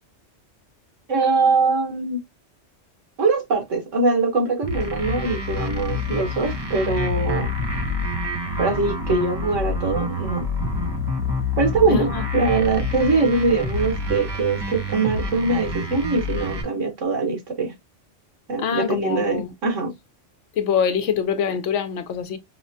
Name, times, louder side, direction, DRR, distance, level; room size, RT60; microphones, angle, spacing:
voice 1, 1.1-2.2 3.2-7.5 8.6-10.5 11.6-17.7 18.5-19.9, right 3 dB, 90° right, 1.5 m, -22 dB
sound 1, 4.6-16.6, left 2 dB, 30° right, 0.5 m, -27 dB
voice 2, 11.9-12.2 18.6-19.5 20.6-22.4, left 7 dB, 75° left, 1.0 m, -24 dB
4.8 x 2.2 x 2.6 m
omnidirectional pair, 1.3 m